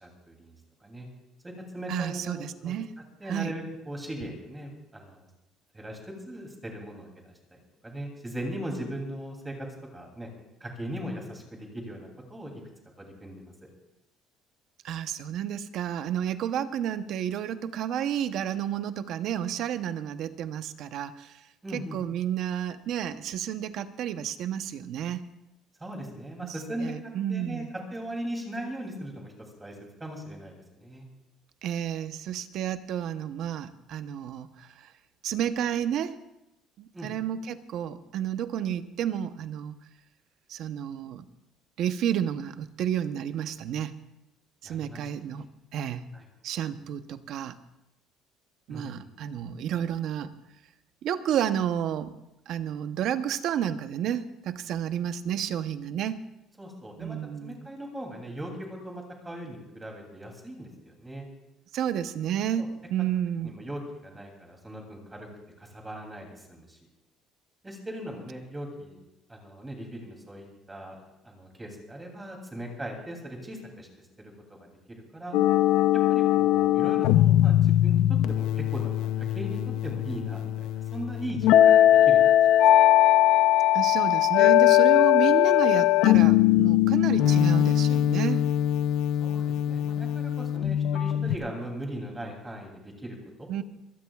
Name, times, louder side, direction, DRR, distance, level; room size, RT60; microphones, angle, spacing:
voice 1, 0.0-1.1 1.4-2.7 3.2-5.3 5.7-9.7 9.9-10.3 10.6-12.6 13.0-13.5 21.6-22.0 25.8-26.9 27.3-27.6 27.9-29.3 29.6-29.7 30.0-31.1 36.9-37.1 44.6-45.1 46.1-46.3 48.7-49.1 56.6-61.3 62.6-62.7 63.4-65.3 65.6-66.8 67.6-69.0 69.3-71.0 71.2-73.9 74.2-74.3 74.6-75.4 76.1-82.6 89.2-93.6, right 1 dB, 10° right, 1 dB, 2.9 m, -39 dB
voice 2, 1.9-2.9 3.3-3.5 14.8-21.4 21.7-25.2 26.4-26.5 26.8-27.7 31.6-34.9 35.2-36.2 36.8-39.7 40.5-41.2 41.8-43.9 44.6-45.5 45.7-46.0 46.4-47.6 48.7-50.3 51.0-52.1 52.5-56.2 57.0-57.7 61.7-63.5 83.7-88.4 93.5-93.6, right 10 dB, 55° right, 11 dB, 0.8 m, -31 dB
sound 1, 75.3-91.4, left 13 dB, 75° left, 0.6 m, -21 dB
23.5 x 17.0 x 2.4 m, 0.90 s
cardioid pair, 155°, 0 cm